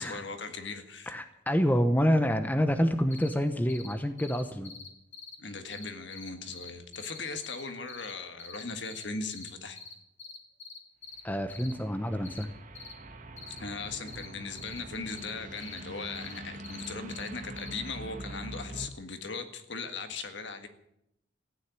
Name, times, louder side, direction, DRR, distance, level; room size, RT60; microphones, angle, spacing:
voice 1, 0.0-1.2 5.4-9.8 13.6-20.7, left 4 dB, 60° left, 7 dB, 1.7 m, -39 dB
voice 2, 1.1-4.7 11.2-12.5, equal, 10° left, 8 dB, 0.8 m, -27 dB
sound 1, 3.1-3.3 3.7-3.9 4.2-5.4 5.7-7.6 7.9-8.1 8.4-9.0 9.3-9.5 9.8-9.9 10.2-11.2 11.5-11.7 12.2-12.4 12.8-12.9 13.4-13.6 14.1-14.3 14.6-14.8 15.1-15.3 15.6-15.8 16.2-17.3 17.6-17.8, left 5 dB, 35° left, 2.4 m, -45 dB
sound 2, 11.2-18.9, right 1 dB, 40° right, 1.2 m, -44 dB
15.0 x 10.0 x 9.7 m, 0.81 s
head